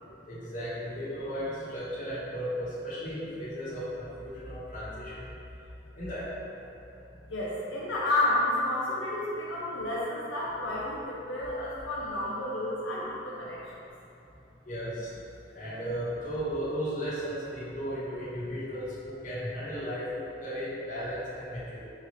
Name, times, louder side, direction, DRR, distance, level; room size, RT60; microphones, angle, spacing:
voice 1, 0.3-5.3 5.9-6.3 14.6-15.1 15.5-21.8, equal, 45° left, -10 dB, 1.3 m, -35 dB
voice 2, 7.3-13.6, left 1 dB, 85° left, -7 dB, 0.7 m, -31 dB
5.2 x 2.8 x 3.1 m, 2.8 s
head